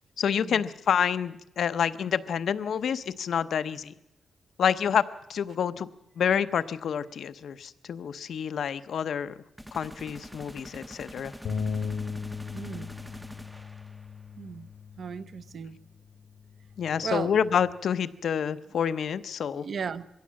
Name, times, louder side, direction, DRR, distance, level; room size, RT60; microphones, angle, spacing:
voice 1, 0.2-3.9 4.6-5.0 5.3-5.9 6.2-9.3 9.7-11.3 16.8-19.6, left 8 dB, 70° left, 0.8 m, -28 dB
sound 1, 9.6-14.3, equal, ahead, 0.6 m, -45 dB
sound 2, 11.4-17.7, left 5 dB, 90° left, 2.1 m, -38 dB
voice 2, 12.5-12.9 14.4-14.7 15.0-15.8 17.0-17.3 19.6-20.1, right 6 dB, 50° right, 0.8 m, -35 dB
22.0 x 16.0 x 7.5 m
wide cardioid pair, 170°, 0 cm